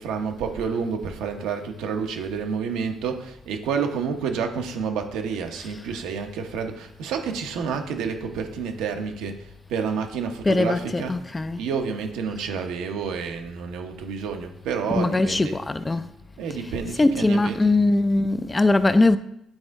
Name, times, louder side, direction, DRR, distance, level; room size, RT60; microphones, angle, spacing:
voice 1, 0.0-11.2 11.6-15.6 16.4-17.7, right 6 dB, 85° right, 0.8 m, -29 dB
voice 2, 10.4-11.6 14.9-16.1 16.5-19.2, left 2 dB, 20° left, 0.4 m, -21 dB
8.9 x 4.3 x 3.6 m
cardioid pair, 80°, 0 cm